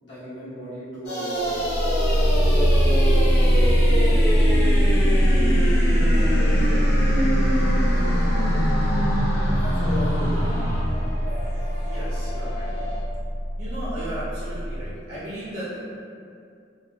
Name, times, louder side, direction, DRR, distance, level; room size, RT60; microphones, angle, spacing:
voice 1, 0.0-1.7 9.7-10.5, left 1 dB, 85° left, -10 dB, 0.9 m, -36 dB
sound 1, 1.1-10.8, equal, 55° left, 0.6 m, -26 dB
sound 2, 1.4-14.9, equal, 5° left, 0.5 m, -21 dB
sound 3, 6.1-13.0, equal, 20° left, 1.3 m, -37 dB
voice 2, 11.8-12.8 13.6-15.8, right 1 dB, 55° right, -10 dB, 0.5 m, -35 dB
2.7 x 2.1 x 2.2 m, 2.4 s
head